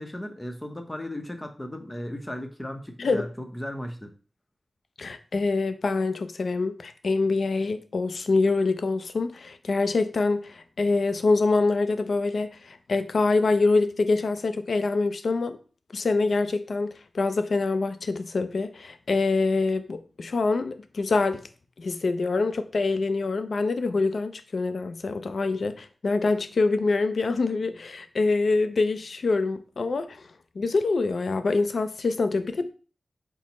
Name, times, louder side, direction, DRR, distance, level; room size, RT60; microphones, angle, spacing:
voice 1, 0.0-4.1, left 1 dB, 15° left, 0.7 m, -36 dB
voice 2, 5.0-15.6 15.9-21.4 21.8-30.3 30.6-32.7, left 3 dB, 75° left, 0.4 m, -25 dB
4.2 x 2.0 x 4.1 m
wide cardioid pair, 70°, 0 cm